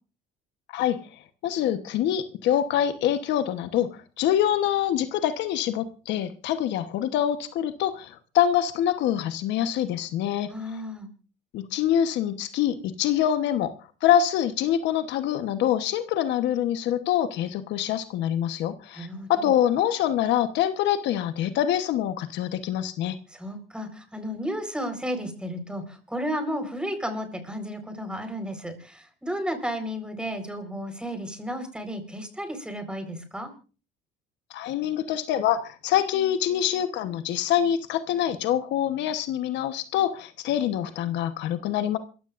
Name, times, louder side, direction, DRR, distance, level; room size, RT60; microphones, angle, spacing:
voice 1, 1.4-10.5 11.5-13.7 14.0-23.2 34.5-42.0, left 10 dB, 70° left, 10 dB, 1.2 m, -25 dB
voice 2, 10.5-11.1 18.9-19.5 23.3-33.5, equal, 5° right, 7 dB, 4.4 m, -33 dB
27.5 x 14.5 x 2.6 m, 0.36 s
cardioid pair, 100°, 19 cm